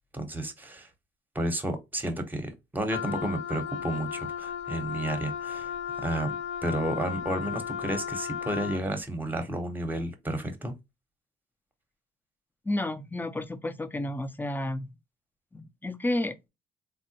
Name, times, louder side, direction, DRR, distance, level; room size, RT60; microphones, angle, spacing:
voice 1, 0.1-0.9 1.3-5.7 6.0-6.4 6.6-10.7, right 1 dB, 10° right, 0.8 m, -32 dB
Wind instrument woodwind instrument, 2.9-8.9, left 8 dB, 85° left, 0.5 m, -35 dB
voice 2, 12.7-14.9 15.5-16.4, left 1 dB, 10° left, 0.5 m, -31 dB
3.5 x 2.1 x 2.8 m
cardioid pair, 90°, 20 cm